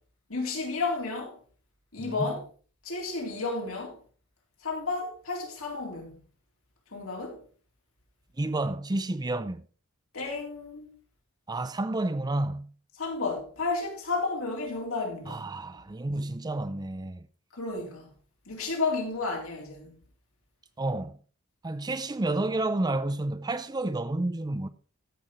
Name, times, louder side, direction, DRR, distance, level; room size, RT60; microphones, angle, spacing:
voice 1, 0.3-1.4 1.9-2.4 2.8-4.0 4.6-6.2 6.9-7.4 10.1-10.9 13.0-15.5 17.5-18.1 18.5-19.9, left 3 dB, 75° left, 3.7 m, -32 dB
voice 2, 2.0-2.3 8.4-9.6 11.5-12.7 15.3-17.3 20.8-21.2 21.6-24.7, right 2 dB, 20° right, 0.5 m, -30 dB
14.5 x 5.8 x 4.4 m
head